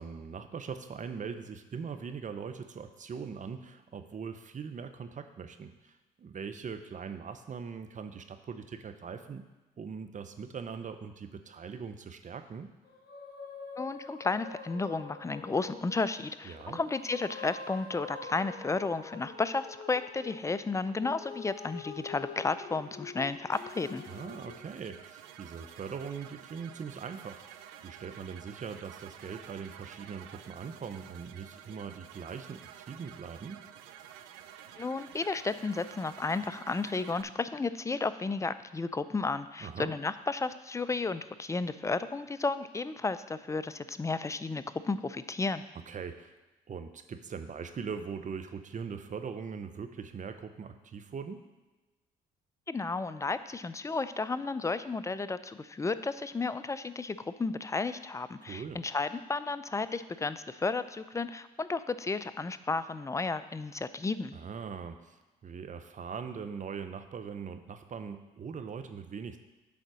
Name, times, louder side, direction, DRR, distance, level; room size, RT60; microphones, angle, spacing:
voice 1, 0.0-9.4 9.8-12.7 16.5-16.8 24.1-32.6 32.9-33.6 39.6-39.9 45.9-46.3 46.7-51.4 58.4-58.8 64.3-65.2 65.4-69.4, right 6 dB, 40° right, 8 dB, 0.8 m, -41 dB
sound 1, 12.8-24.6, left 5 dB, 55° left, 1.2 m, -46 dB
voice 2, 13.8-24.0 34.8-45.6 52.7-64.4, left 3 dB, 15° left, 13 dB, 0.5 m, -33 dB
sound 2, 23.5-37.2, right 10 dB, 85° right, 0.4 m, -50 dB
8.5 x 3.9 x 6.2 m, 1.2 s
hypercardioid pair, 55°, 19 cm